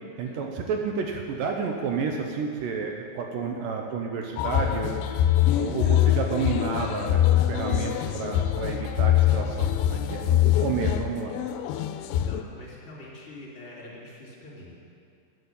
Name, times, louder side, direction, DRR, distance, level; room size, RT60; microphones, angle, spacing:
voice 1, 0.2-4.9 5.6-11.4, right 5 dB, 80° right, 2 dB, 2.0 m, -31 dB
sound 1, 4.4-12.4, left 11 dB, 80° left, 2.4 m, -24 dB
voice 2, 12.1-14.7, left 1 dB, 20° left, -5 dB, 2.1 m, -45 dB
11.0 x 9.6 x 7.2 m, 2.3 s
omnidirectional pair, 4.8 m